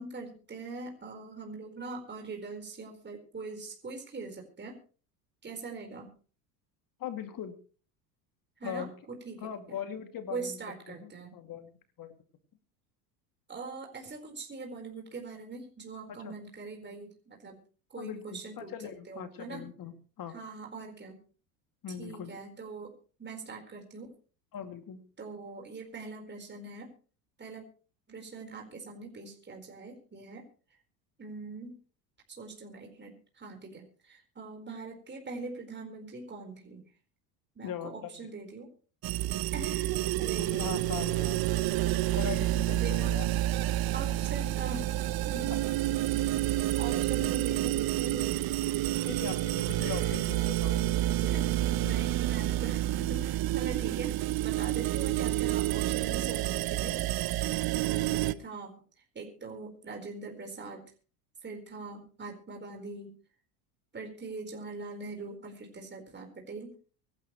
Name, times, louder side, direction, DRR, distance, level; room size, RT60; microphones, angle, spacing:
voice 1, 0.0-4.8 5.4-6.1 8.6-9.8 10.3-11.3 13.5-17.6 17.9-18.7 19.1-19.7 20.3-21.2 22.0-22.9 23.2-24.1 25.2-26.9 27.4-27.7 28.1-30.4 31.2-31.8 32.3-36.8 37.6-38.7 39.5-41.0 42.2-43.2 43.9-45.6 46.8-48.5 49.8-50.3 51.2-54.1 54.4-58.8 59.1-60.8 61.4-63.1 63.9-66.7, right 4 dB, 20° right, 2 dB, 4.5 m, -42 dB
voice 2, 7.0-7.5 8.6-8.9 9.4-10.6 10.9-11.7 12.0-12.1 16.1-16.3 18.0-20.4 21.8-22.3 24.5-25.0 37.6-38.3 40.4-41.4 42.1-43.3 49.0-51.0, left 8 dB, 45° left, 7 dB, 2.6 m, -40 dB
sound 1, 39.0-58.3, right 15 dB, 45° right, 0.9 m, -29 dB
24.0 x 12.0 x 3.2 m, 0.39 s
hypercardioid pair, 90°, 49 cm